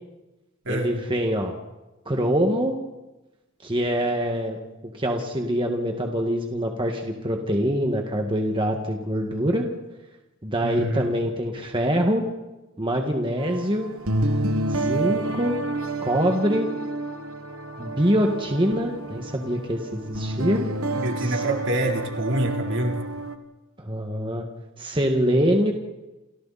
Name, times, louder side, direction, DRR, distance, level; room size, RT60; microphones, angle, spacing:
voice 1, 0.7-1.5 2.1-2.8 3.6-4.6 5.0-9.7 10.4-12.2 12.8-13.9 14.7-15.6 16.0-16.7 17.8-20.6 21.2-21.4 23.8-24.4 24.8-25.7, equal, 25° right, 2 dB, 1.9 m, -24 dB
voice 2, 10.6-11.1 20.9-23.0, right 1 dB, 60° right, 1 dB, 3.8 m, -26 dB
sound 1, 13.4-23.3, right 2 dB, 90° right, 1.8 m, -29 dB
29.5 x 27.5 x 4.3 m, 1.1 s
head